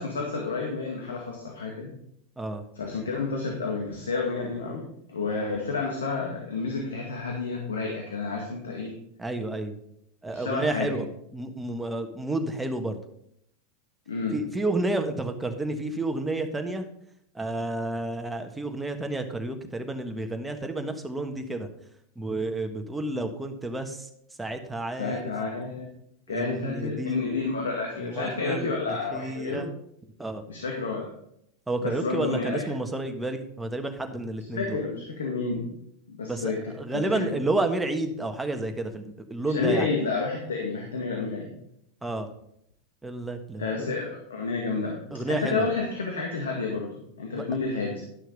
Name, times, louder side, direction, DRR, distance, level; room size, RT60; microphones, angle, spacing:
voice 1, 0.0-1.9 2.8-8.9 10.3-11.0 14.1-14.4 25.0-25.9 26.3-29.7 30.5-31.1 31.8-32.7 34.5-35.7 36.1-37.4 39.4-41.5 43.6-45.0 45.3-48.0, left 4 dB, 85° left, 0 dB, 1.9 m, -30 dB
voice 2, 9.2-9.8 10.2-11.1 11.3-13.0 14.3-16.9 17.3-21.7 22.1-24.1 24.4-25.2 26.3-27.2 28.0-29.7 30.2-30.4 31.7-34.8 36.3-39.9 42.0-42.3 43.0-43.9 45.1-45.7 47.3-47.4, right 2 dB, 10° right, 5 dB, 1.5 m, -30 dB
11.5 x 6.3 x 5.3 m, 0.73 s
hypercardioid pair, 100°, 0 cm